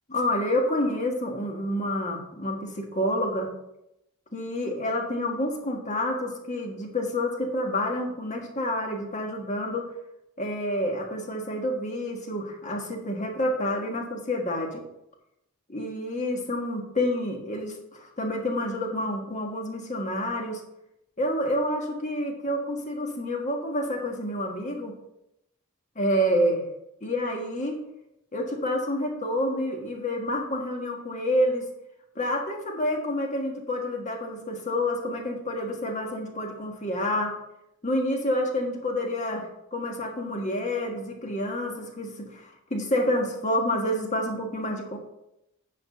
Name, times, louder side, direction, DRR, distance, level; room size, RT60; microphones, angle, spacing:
voice 1, 0.1-3.5 4.3-9.9 10.4-14.8 15.7-20.6 21.2-24.9 26.0-26.6 27.0-27.8 28.3-31.6 32.2-37.3 37.8-45.0, left 1 dB, 35° left, 2 dB, 1.6 m, -28 dB
9.7 x 4.0 x 6.5 m, 0.84 s
head